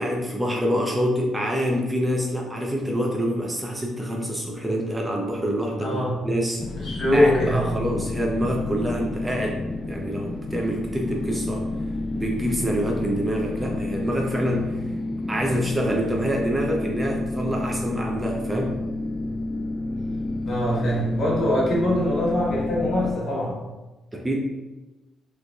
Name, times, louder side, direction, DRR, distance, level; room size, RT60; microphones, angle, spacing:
voice 1, 0.0-6.6 7.1-11.7 12.1-14.8 15.3-18.7 24.1-24.4, equal, 15° right, 0 dB, 0.6 m, -26 dB
voice 2, 5.8-6.1 6.8-7.6 20.4-23.6, left 1 dB, 60° left, -4 dB, 1.2 m, -23 dB
sound 1, 6.6-23.1, left 2 dB, 30° left, 0.3 m, -30 dB
3.7 x 3.2 x 2.3 m, 1.1 s
cardioid pair, 90°, 0 cm